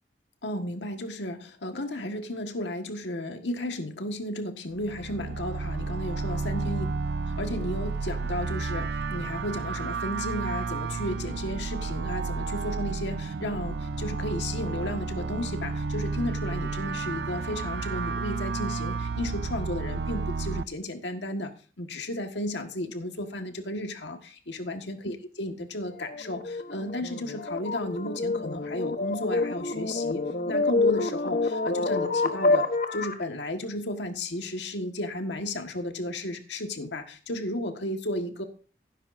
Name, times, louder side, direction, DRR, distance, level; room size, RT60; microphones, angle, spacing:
voice 1, 0.4-6.9 7.4-21.5 21.8-30.2 30.5-32.7 32.9-38.4, left 1 dB, 85° left, 5 dB, 1.6 m, -34 dB
sound 1, 4.8-20.6, right 4 dB, 70° right, 0.4 m, -31 dB
sound 2, 25.9-33.2, left 3 dB, 50° left, 1.1 m, -27 dB
17.0 x 9.9 x 2.6 m, 0.39 s
head